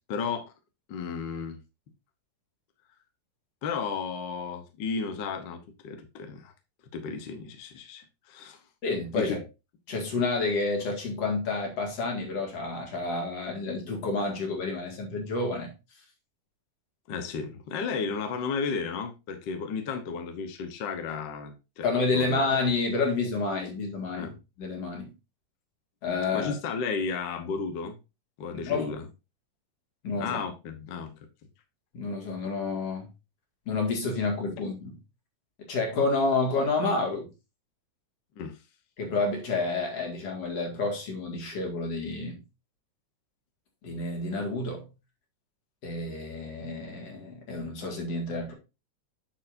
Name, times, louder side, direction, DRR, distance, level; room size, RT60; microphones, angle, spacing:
voice 1, 0.1-0.4 0.9-1.6 3.6-6.5 6.9-8.6 9.1-9.4 17.1-21.9 22.1-22.4 24.2-24.3 26.3-28.0 28.4-29.0 30.2-31.1 38.4-38.5, left 5 dB, 75° left, 1.0 m, -33 dB
voice 2, 8.8-9.4 9.9-15.7 21.8-25.1 26.0-26.5 28.5-28.9 30.0-30.4 31.9-33.1 33.7-35.0 35.7-37.3 39.0-42.4 43.8-44.9 45.8-48.5, left 3 dB, 55° left, 3.0 m, -29 dB
8.4 x 6.6 x 2.6 m
omnidirectional pair, 3.6 m